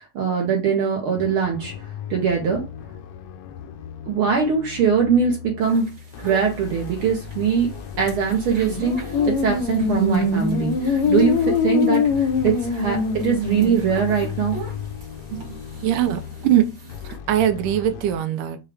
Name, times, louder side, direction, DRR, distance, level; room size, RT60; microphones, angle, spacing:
voice 1, 0.0-1.7 2.1-2.6 4.0-5.9 6.2-14.6 15.3-15.6, right 6 dB, 70° right, 1.3 m, -22 dB
sound 1, 1.2-18.2, left 7 dB, 90° left, 1.3 m, -36 dB
sound 2, 5.6-17.2, right 2 dB, 40° right, 1.0 m, -41 dB
sound 3, 9.1-13.9, left 4 dB, 70° left, 2.0 m, -22 dB
voice 2, 15.8-16.6 17.3-18.6, right 11 dB, 90° right, 2.2 m, -21 dB
6.5 x 2.3 x 3.3 m
omnidirectional pair, 3.5 m